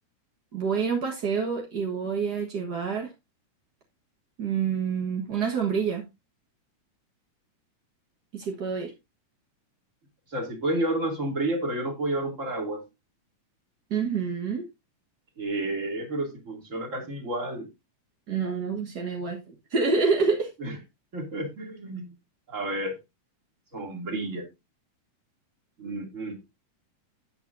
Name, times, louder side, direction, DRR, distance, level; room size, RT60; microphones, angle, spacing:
voice 1, 0.5-3.1 4.4-6.1 8.3-8.9 13.9-14.7 18.3-19.4 19.7-20.5, right 5 dB, 50° right, 1.2 m, -27 dB
voice 2, 10.3-12.8 15.4-17.7 20.6-20.8 21.1-22.1 22.5-23.0 23.7-24.5 25.8-26.4, right 1 dB, 25° right, 2.6 m, -30 dB
12.0 x 8.9 x 2.6 m
omnidirectional pair, 3.7 m